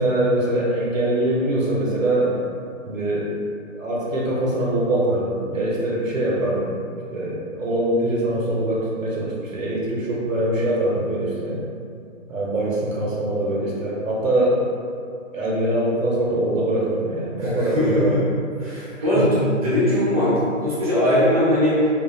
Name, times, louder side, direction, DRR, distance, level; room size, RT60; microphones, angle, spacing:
voice 1, 0.0-2.3 2.8-3.3 3.7-6.8 7.1-11.6 12.3-14.6 15.3-18.2 19.0-19.3, right 1 dB, 85° right, -5 dB, 0.8 m, -23 dB
voice 2, 17.4-18.2 18.6-21.9, left 1 dB, 30° right, -10 dB, 0.7 m, -20 dB
2.7 x 2.2 x 2.5 m, 2.4 s
hypercardioid pair, 165°, 39 cm